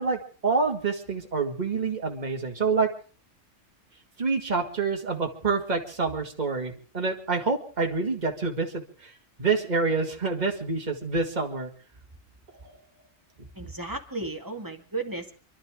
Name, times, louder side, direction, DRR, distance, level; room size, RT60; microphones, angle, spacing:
voice 1, 0.0-2.9 4.2-9.1 9.4-11.7 13.6-13.7, right 4 dB, 35° right, 1 dB, 2.2 m, -27 dB
voice 2, 13.6-15.4, right 3 dB, 15° right, 3 dB, 2.1 m, -34 dB
28.5 x 12.0 x 3.7 m, 0.40 s
omnidirectional pair, 1.3 m